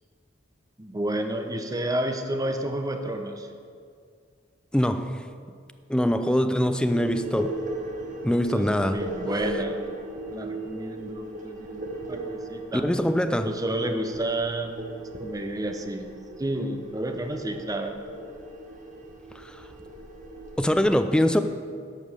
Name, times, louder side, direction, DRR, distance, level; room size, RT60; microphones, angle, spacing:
voice 1, 0.8-3.5 8.5-9.8 10.3-12.9 13.4-16.1 16.4-18.0, right 1 dB, 20° right, 5 dB, 0.8 m, -30 dB
voice 2, 4.7-5.3 5.9-7.6 8.2-9.0 12.7-13.5 19.4-19.6 20.6-21.4, equal, 5° left, 9 dB, 0.4 m, -23 dB
sound 1, 6.9-20.9, right 1 dB, 45° right, 1.1 m, -38 dB
11.5 x 5.4 x 6.7 m, 2.2 s
head